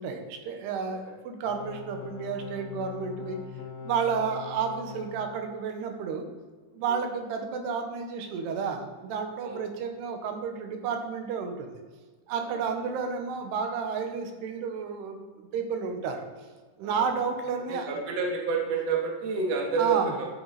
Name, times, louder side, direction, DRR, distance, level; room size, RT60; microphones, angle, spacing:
voice 1, 0.0-3.4 3.8-6.2 6.7-11.8 12.3-16.3 16.8-17.9 19.8-20.1, right 6 dB, 85° right, 4 dB, 3.2 m, -31 dB
voice 2, 0.8-1.2 4.0-4.3 6.9-7.0 9.4-9.7 12.4-12.8 16.8-17.3 17.7-20.3, right 5 dB, 50° right, 0 dB, 2.3 m, -30 dB
sound 1, 1.5-5.4, left 7 dB, 70° left, 3.1 m, -41 dB
13.0 x 8.2 x 4.1 m, 1.4 s
omnidirectional pair, 4.6 m